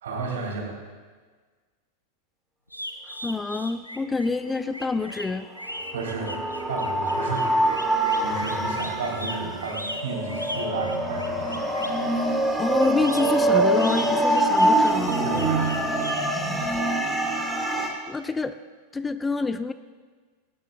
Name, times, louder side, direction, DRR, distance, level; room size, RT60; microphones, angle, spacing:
voice 1, 0.0-0.7 5.9-6.4 6.7-7.6 8.2-11.7 12.0-12.1 15.2-15.8 16.6-16.8, right 4 dB, 60° right, -1 dB, 3.8 m, -32 dB
sound 1, 2.7-12.0 12.8-16.3, equal, 90° left, 0.9 m, -37 dB
voice 2, 3.2-5.5 12.1-15.2 18.1-18.6 18.9-19.7, left 4 dB, 10° left, 13 dB, 0.4 m, -27 dB
sound 2, 5.6-17.9, right 1 dB, 5° right, 2.2 m, -24 dB
18.5 x 18.5 x 2.4 m, 1.5 s
figure-of-eight pair, 90°, 0 cm